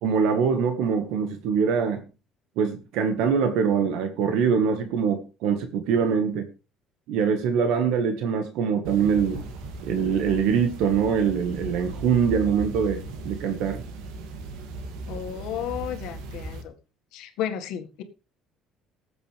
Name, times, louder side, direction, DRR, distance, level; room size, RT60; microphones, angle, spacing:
voice 1, 0.0-2.0 2.6-6.5 7.1-9.4 9.8-13.8, right 6 dB, 70° right, 7 dB, 1.6 m, -23 dB
sound 1, 8.8-16.6, right 3 dB, 85° right, 2.4 m, -37 dB
voice 2, 15.1-16.7 17.1-18.0, left 10 dB, 70° left, 6 dB, 1.9 m, -33 dB
19.0 x 7.9 x 3.4 m, 0.31 s
cardioid pair, 170°, 0 cm